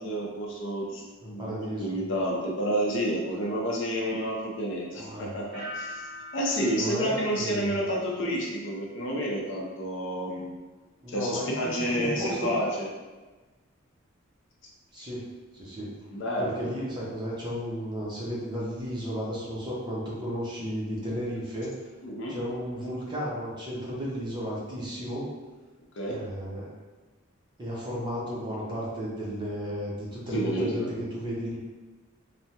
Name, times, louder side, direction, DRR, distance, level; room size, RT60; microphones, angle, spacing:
voice 1, 0.0-6.1 6.3-10.6 11.1-12.9 15.0-15.1 16.1-16.6 22.0-22.4 25.9-26.2 30.3-30.9, equal, 60° left, -2 dB, 0.5 m, -30 dB
voice 2, 1.2-2.0 5.0-5.3 6.7-7.7 11.0-12.5 14.9-15.3 15.5-15.9 16.4-21.8 22.3-25.3 26.1-26.7 27.6-31.6, equal, 20° right, -6 dB, 0.7 m, -34 dB
sound 1, 5.5-8.4 8.7-9.2, left 1 dB, 55° right, 0.8 m, -43 dB
3.3 x 2.0 x 2.8 m, 1.3 s
head